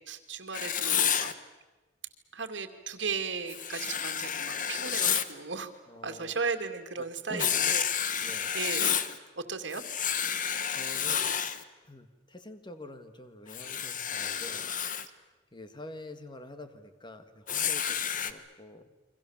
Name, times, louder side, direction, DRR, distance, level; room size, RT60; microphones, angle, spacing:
voice 1, 0.1-1.3 2.3-5.7 6.0-9.0 9.4-9.8, right 5 dB, 75° right, 7 dB, 2.4 m, -36 dB
Writing, 0.5-1.3 3.5-5.3 7.4-9.2 9.7-11.6 13.5-15.1 17.5-18.3, left 8 dB, 45° left, 1.2 m, -30 dB
voice 2, 5.9-6.3 7.0-7.5 8.2-8.5 10.7-11.3 11.8-14.7 15.5-18.9, left 2 dB, 25° left, 9 dB, 1.8 m, -46 dB
29.5 x 24.0 x 7.3 m, 1.2 s
head